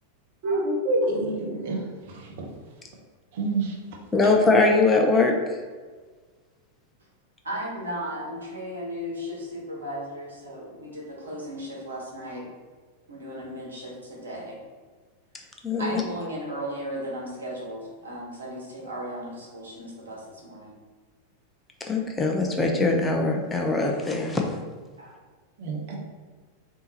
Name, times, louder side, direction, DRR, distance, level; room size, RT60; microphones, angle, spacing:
voice 1, 0.4-1.8 2.1-2.5 3.3-3.7 25.6-26.0, right 2 dB, 50° right, 0 dB, 1.0 m, -27 dB
voice 2, 4.1-5.4 15.6-16.0 21.9-24.6, left 3 dB, 15° left, 1 dB, 0.5 m, -22 dB
voice 3, 7.4-12.5 13.1-14.6 15.8-20.8 25.0-25.2, equal, 70° right, -3 dB, 1.2 m, -35 dB
3.6 x 2.8 x 4.1 m, 1.4 s
figure-of-eight pair, 90°, 0 cm